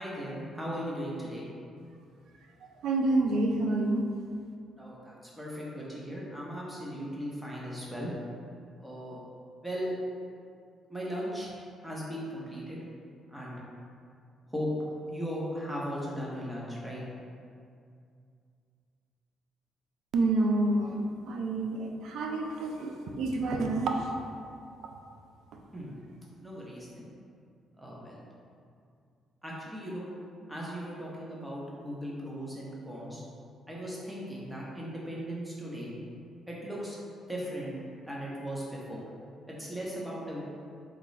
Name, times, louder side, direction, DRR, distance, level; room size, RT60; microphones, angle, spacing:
voice 1, 0.0-1.5 4.8-8.1 8.8-9.2 9.6-10.0 10.9-11.5 11.8-12.8 13.3-13.6 14.5-14.7 15.1-17.0 25.7-25.9 26.4-27.1 27.8-28.2 29.4-30.1 30.5-33.2 33.7-35.9 36.5-37.0 37.3-37.8 38.0-39.0 39.6-40.4, equal, 10° right, -5 dB, 0.8 m, -37 dB
voice 2, 2.8-4.0 20.1-23.9, right 2 dB, 75° right, 3 dB, 0.3 m, -28 dB
3.7 x 2.3 x 3.1 m, 2.3 s
cardioid pair, 90°, 0 cm